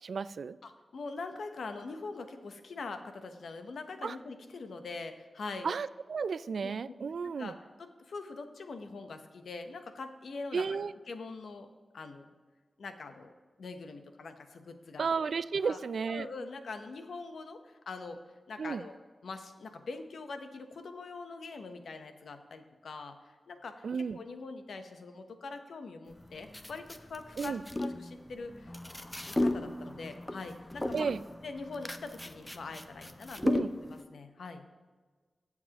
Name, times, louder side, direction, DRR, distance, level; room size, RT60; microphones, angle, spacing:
voice 1, 0.0-0.6 4.0-4.2 5.6-7.5 10.5-10.9 15.0-16.3 18.6-18.8 23.8-24.2 27.4-27.6 30.9-31.2 33.4-33.7, right 5 dB, 75° right, 16 dB, 0.3 m, -33 dB
voice 2, 0.6-5.7 6.6-6.7 7.4-7.5 7.8-10.8 11.1-11.7 11.9-12.3 12.8-15.3 15.6-15.8 16.1-18.2 18.5-19.0 19.2-23.9 24.2-28.8 29.2-31.1 31.4-34.7, left 3 dB, 85° left, 7 dB, 0.9 m, -43 dB
sound 1, 26.1-34.0, left 1 dB, 15° left, 0.6 m, -35 dB
21.0 x 7.2 x 3.0 m, 1.4 s
wide cardioid pair, 100°, 0 cm